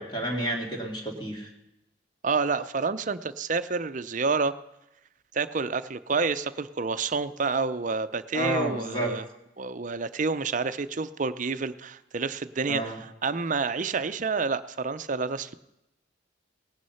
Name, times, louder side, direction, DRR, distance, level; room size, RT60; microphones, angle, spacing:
voice 1, 0.0-1.5 8.3-9.1 12.7-13.0, right 1 dB, 25° left, 1 dB, 2.6 m, -30 dB
voice 2, 2.2-4.6 5.3-9.3 9.6-15.5, right 4 dB, 40° right, 13 dB, 0.6 m, -29 dB
18.5 x 9.5 x 5.6 m, 0.90 s
head